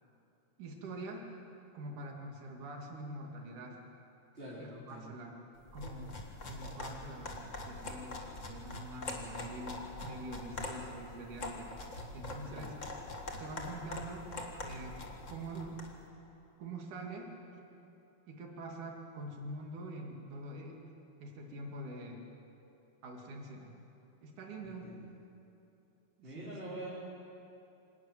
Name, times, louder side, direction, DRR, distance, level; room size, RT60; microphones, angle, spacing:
voice 1, 0.6-1.3 1.7-3.8 4.6-5.3 5.7-6.1 6.5-11.7 12.1-12.8 13.4-15.0 15.3-15.8 16.6-17.6 18.3-20.8 21.2-22.2 23.0-23.7 24.2-24.9 26.2-26.7, right 2 dB, 65° right, 1 dB, 3.7 m, -45 dB
voice 2, 4.3-5.1 12.4-12.6 24.8-24.9 26.2-26.9, right 1 dB, 15° right, -9 dB, 4.0 m, -45 dB
sound 1, 5.6-16.0, left 2 dB, 30° left, 1.4 m, -44 dB
26.0 x 12.0 x 9.3 m, 2.8 s
omnidirectional pair, 4.0 m